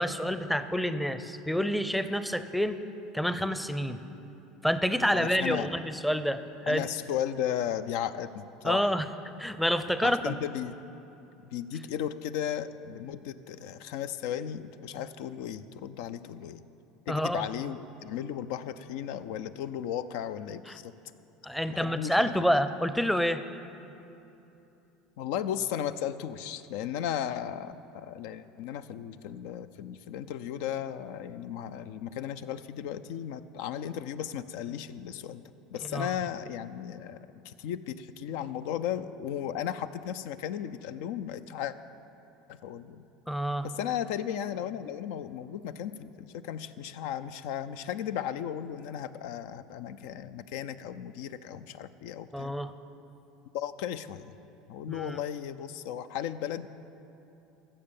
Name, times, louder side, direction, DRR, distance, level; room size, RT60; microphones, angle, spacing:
voice 1, 0.0-2.8 3.1-4.0 4.6-6.9 8.6-9.1 9.4-10.4 17.1-17.5 20.7-20.8 21.4-23.4 35.8-36.1 43.3-43.7 52.3-52.7 54.9-55.2, equal, ahead, 11 dB, 0.6 m, -28 dB
voice 2, 5.1-5.7 6.7-8.9 10.0-10.8 11.5-16.6 17.1-20.9 21.7-22.3 25.2-35.4 35.7-37.2 37.4-41.7 42.5-43.0 43.6-52.5 53.5-54.4 54.7-56.7, left 10 dB, 75° left, 12 dB, 0.5 m, -35 dB
15.0 x 6.7 x 7.1 m, 2.9 s
supercardioid pair, 105°, 0 cm